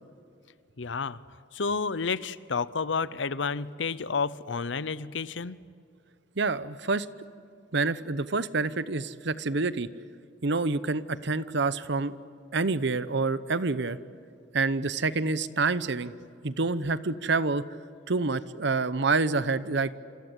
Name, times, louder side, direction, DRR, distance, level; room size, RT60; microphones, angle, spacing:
voice 1, 0.8-1.2 1.5-5.6, left 5 dB, 75° left, 17 dB, 0.8 m, -30 dB
voice 2, 6.4-7.1 7.7-9.9 10.4-12.2 12.5-14.0 14.5-16.1 16.4-17.7 18.1-19.9, right 3 dB, 70° right, 15 dB, 0.9 m, -27 dB
27.5 x 26.5 x 8.2 m, 2.4 s
head